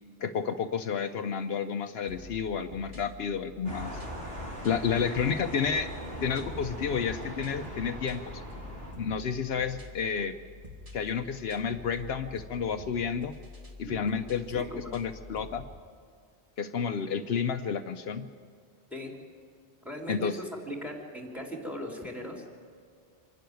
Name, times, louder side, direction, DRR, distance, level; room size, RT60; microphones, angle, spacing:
voice 1, 0.2-4.0 4.6-5.9 6.2-8.2 9.0-10.3 10.9-13.3 13.8-15.6 16.6-18.3 20.1-20.4, left 6 dB, 75° left, 8 dB, 0.9 m, -31 dB
sound 1, 2.1-15.8, left 3 dB, 35° right, 1.6 m, -47 dB
sound 2, 3.6-8.9, equal, 75° right, 4.4 m, -40 dB
voice 2, 13.8-15.0 18.9-19.1 19.8-22.4, equal, ahead, 0 dB, 3.2 m, -39 dB
25.5 x 11.5 x 9.3 m, 2.1 s
omnidirectional pair, 1.1 m